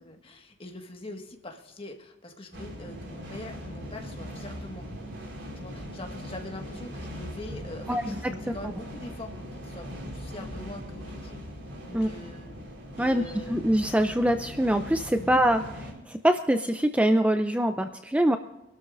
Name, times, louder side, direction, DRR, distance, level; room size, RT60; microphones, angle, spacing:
voice 1, 0.0-4.9 5.5-11.5 11.8-12.5 13.0-13.6 15.2-15.4, left 1 dB, 30° left, 3 dB, 1.7 m, -43 dB
sound 1, 2.5-15.9, equal, 70° right, 4.5 m, -40 dB
voice 2, 7.9-8.2 11.9-12.1 13.0-13.2 13.5-18.4, right 1 dB, 5° right, 7 dB, 0.5 m, -24 dB
25.5 x 12.5 x 2.6 m, 0.98 s
head